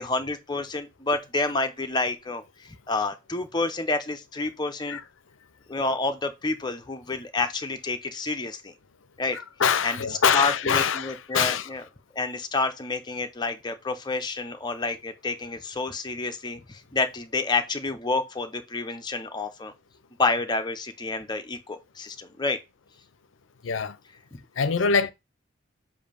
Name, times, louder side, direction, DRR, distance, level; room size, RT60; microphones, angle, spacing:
voice 1, 0.0-5.0 5.7-8.7 9.2-9.4 9.8-11.8 12.1-19.7 20.2-22.6 24.3-24.4, left 3 dB, 20° left, 0.6 m, -29 dB
voice 2, 9.3-11.7 23.6-24.0 24.6-25.1, left 6 dB, 75° left, 0.5 m, -24 dB
7.1 x 2.6 x 5.1 m
head